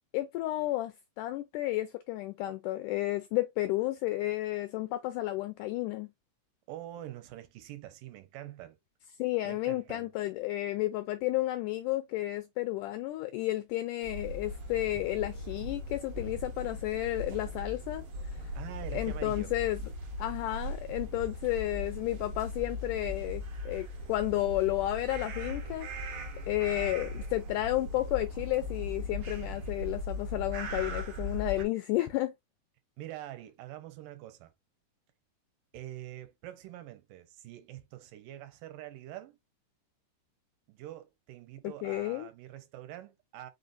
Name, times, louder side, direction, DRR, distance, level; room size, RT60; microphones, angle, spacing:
voice 1, 0.1-6.1 9.2-18.1 18.9-19.8 20.2-25.9 26.5-32.3 41.8-42.3, left 16 dB, 85° left, 1.8 m, -32 dB
voice 2, 6.7-8.8 9.4-10.1 18.6-19.5 33.0-34.5 35.7-39.4 40.7-43.5, right 13 dB, 80° right, 2.2 m, -45 dB
sound 1, 14.0-31.6, left 1 dB, 65° right, 1.4 m, -39 dB
5.4 x 3.9 x 2.5 m
omnidirectional pair, 4.1 m